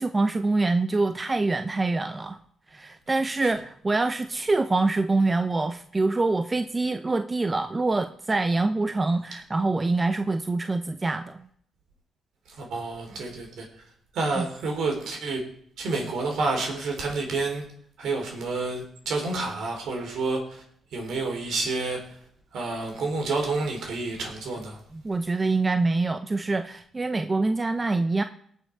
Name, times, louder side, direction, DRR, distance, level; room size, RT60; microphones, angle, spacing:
voice 1, 0.0-2.4 2.7-11.5 14.4-14.5 24.9-28.2, right 3 dB, 25° right, 9 dB, 0.8 m, -25 dB
voice 2, 12.6-13.7 14.1-15.4 15.8-17.6 18.0-20.6 20.9-22.0 22.5-24.8, right 3 dB, 70° right, 2 dB, 4.1 m, -29 dB
18.5 x 6.6 x 4.8 m, 0.63 s
supercardioid pair, 70°, 0 cm